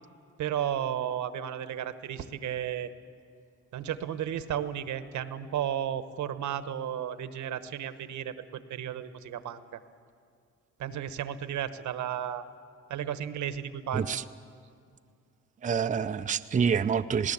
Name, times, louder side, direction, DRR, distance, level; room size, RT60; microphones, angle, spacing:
voice 1, 0.4-2.9 3.7-9.8 10.8-12.4 12.9-14.2, right 10 dB, 70° right, 11 dB, 1.1 m, -33 dB
voice 2, 13.9-14.2 15.6-17.3, right 6 dB, 25° right, 9 dB, 0.5 m, -27 dB
20.0 x 18.0 x 8.6 m, 2.3 s
cardioid pair, 90°, 30 cm